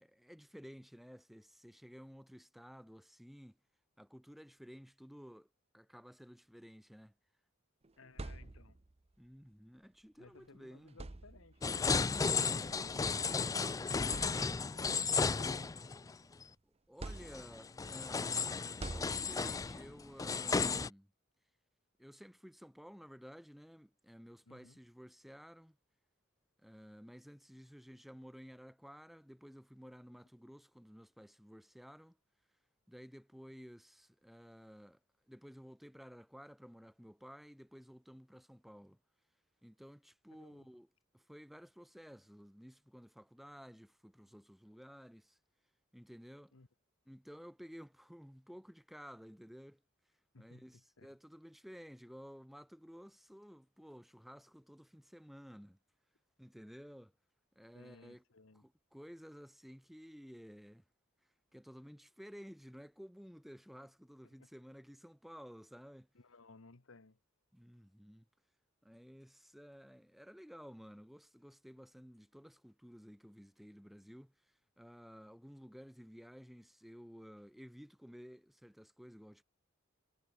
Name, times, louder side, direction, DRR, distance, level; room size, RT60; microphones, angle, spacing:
voice 1, 0.0-3.6 4.0-5.5 5.7-7.1 9.2-11.0 16.6-21.1 22.0-25.8 26.6-32.2 32.9-35.0 35.3-39.0 39.6-45.4 45.9-46.5 47.1-49.8 50.4-55.8 56.4-57.1 57.5-58.2 58.5-60.8 61.5-66.1 67.5-68.3 68.8-74.3 74.8-79.4, equal, ahead, 1.5 m, -54 dB
sound 1, 7.8-9.0 10.2-10.4 10.9-11.7 12.8-13.0 13.5-13.6 14.1-14.9 15.4-16.4 17.0-17.8 18.8-19.7, right 2 dB, 30° right, 0.7 m, -47 dB
voice 2, 8.0-8.8 10.2-15.7 24.5-24.8 40.3-40.7 46.5-46.7 50.3-51.1 57.7-58.6 64.4-64.5 66.1-67.2, left 3 dB, 75° left, 1.3 m, -60 dB
sound 2, 11.6-16.1 16.4-16.5 17.3-20.9, left 5 dB, 15° left, 0.3 m, -34 dB
head